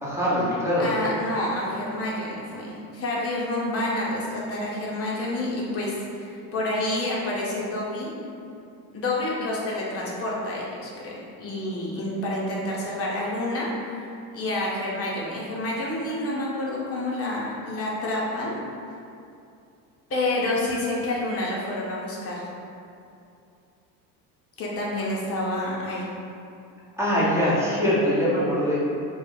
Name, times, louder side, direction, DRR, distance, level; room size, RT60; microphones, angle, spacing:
voice 1, 0.0-0.9 27.0-28.8, equal, 5° right, -8 dB, 0.8 m, -23 dB
voice 2, 0.8-8.1 8.9-11.1 11.4-13.7 14.3-18.5 20.1-22.4 24.6-26.1, left 1 dB, 30° left, -4 dB, 0.7 m, -28 dB
2.3 x 2.3 x 3.6 m, 2.6 s
hypercardioid pair, 75°, 49 cm